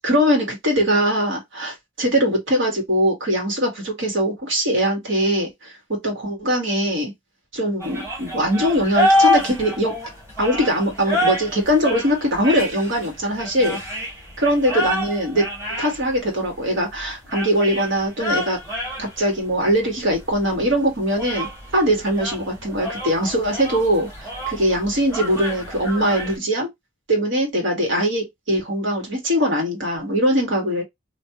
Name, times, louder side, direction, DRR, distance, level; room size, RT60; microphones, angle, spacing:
voice 1, 0.0-7.1 7.5-10.0 10.4-13.8 14.4-15.5 15.8-18.6 19.0-26.7 27.1-30.8, equal, 65° right, 1.8 m, -21 dB
sound 1, 7.8-26.4, equal, 15° right, 1.9 m, -27 dB
3.2 x 2.6 x 2.9 m
head